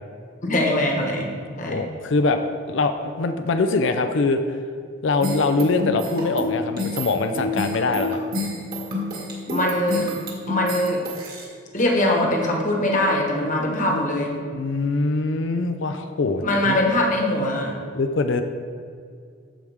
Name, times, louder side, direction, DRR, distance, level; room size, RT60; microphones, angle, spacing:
voice 1, 0.4-1.8 9.4-10.1 10.5-11.0 11.7-14.4 16.4-17.7, left 1 dB, 40° left, 0 dB, 1.2 m, -22 dB
voice 2, 1.7-4.4 5.0-8.2 14.5-16.8 17.9-18.4, left 3 dB, 65° left, 7 dB, 0.5 m, -23 dB
sound 1, 5.2-11.4, left 1 dB, 45° right, 1.9 m, -28 dB
13.5 x 4.8 x 3.5 m, 2.2 s
head